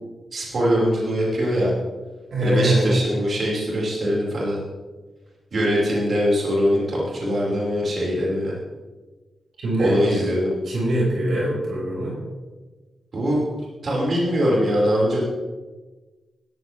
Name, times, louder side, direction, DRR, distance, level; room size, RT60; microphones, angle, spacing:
voice 1, 0.3-1.7 2.4-4.6 5.5-8.5 9.8-10.5 13.1-13.4 13.8-15.2, equal, 55° right, -5 dB, 5.6 m, -22 dB
voice 2, 2.3-2.9 9.6-10.0 10.7-12.2, right 1 dB, 80° right, -4 dB, 5.8 m, -22 dB
16.5 x 14.5 x 3.6 m, 1.3 s
cardioid pair, 80°, 0 cm